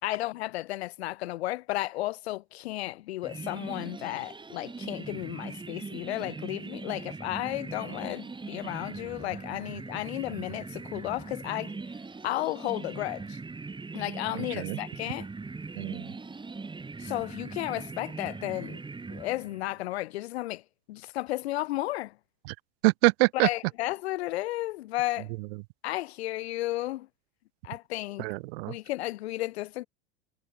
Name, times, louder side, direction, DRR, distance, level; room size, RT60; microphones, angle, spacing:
voice 1, 0.0-11.7 12.2-13.4 13.9-15.3 17.0-18.8 19.1-20.6 20.9-22.2 23.4-25.3 25.8-27.1 27.6-28.3 28.7-29.9, left 17 dB, 70° left, 3.6 m, -33 dB
sound 1, 3.2-19.8, right 4 dB, 15° right, 7.0 m, -40 dB
voice 2, 14.3-14.8 15.8-16.1 22.5-22.6 22.8-23.5 28.2-28.7, right 26 dB, 60° right, 1.0 m, -25 dB
hypercardioid pair, 100°, 33 cm